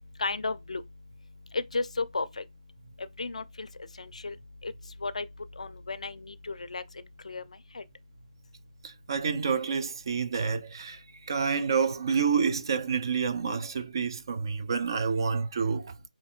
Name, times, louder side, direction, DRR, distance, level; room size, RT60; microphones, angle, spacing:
voice 1, 0.2-0.8 1.5-2.4 3.2-3.7 4.0-4.4 4.6-4.7 5.0-5.3 5.6-6.8 7.2-7.4 7.7-7.8, left 3 dB, 55° left, 0.4 m, -33 dB
voice 2, 8.8-16.1, right 5 dB, 35° right, 0.4 m, -29 dB
5.2 x 3.0 x 2.4 m
figure-of-eight pair, 155°, 4 cm